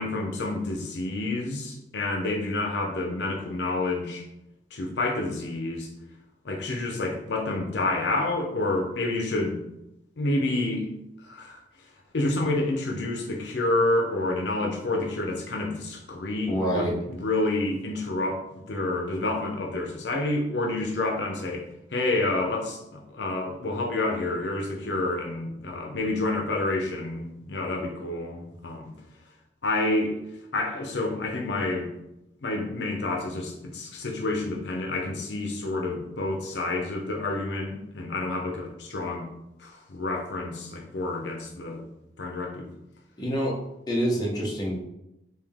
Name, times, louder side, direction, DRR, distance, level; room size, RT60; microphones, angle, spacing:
voice 1, 0.0-4.3 4.7-5.9 6.4-9.6 10.2-10.9 11.2-11.6 12.1-28.9 29.6-30.2 30.5-31.9 32.4-39.3 39.6-41.8 42.2-42.7, left 2 dB, 75° left, 1 dB, 0.6 m, -29 dB
voice 2, 16.5-17.0 43.2-43.6 43.9-44.8, equal, 20° left, -4 dB, 0.9 m, -26 dB
3.6 x 2.7 x 3.5 m, 0.87 s
head